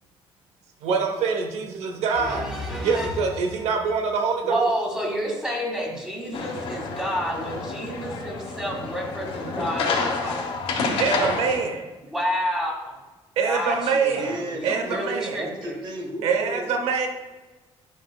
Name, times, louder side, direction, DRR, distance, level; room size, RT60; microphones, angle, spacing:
voice 1, 0.8-2.4 2.8-4.7 11.0-11.9 13.4-15.4 16.2-17.1, right 5 dB, 85° right, 4 dB, 0.9 m, -25 dB
voice 2, 2.2-3.3 4.4-10.6 12.0-13.0 13.4-15.8, equal, 5° right, -2 dB, 2.0 m, -30 dB
sound 1, 6.3-11.6, left 4 dB, 70° left, 1.5 m, -29 dB
voice 3, 14.1-14.9 15.4-16.7, right 1 dB, 50° right, 3 dB, 1.4 m, -34 dB
11.0 x 5.4 x 2.3 m, 1.2 s
cardioid pair, 130°, 10 cm